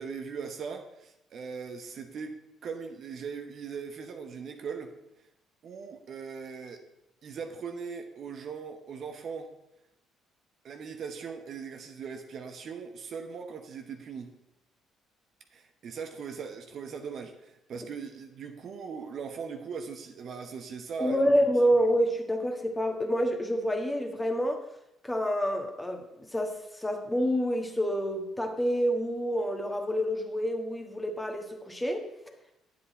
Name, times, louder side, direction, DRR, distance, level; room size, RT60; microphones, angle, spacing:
voice 1, 0.0-4.9 5.6-6.9 7.2-9.5 10.6-14.3 15.5-21.5, right 6 dB, 50° right, 5 dB, 1.0 m, -39 dB
voice 2, 21.0-24.6 25.0-32.1, equal, 10° left, 4 dB, 1.5 m, -28 dB
9.8 x 7.7 x 4.1 m, 0.84 s
figure-of-eight pair, 50°, 0 cm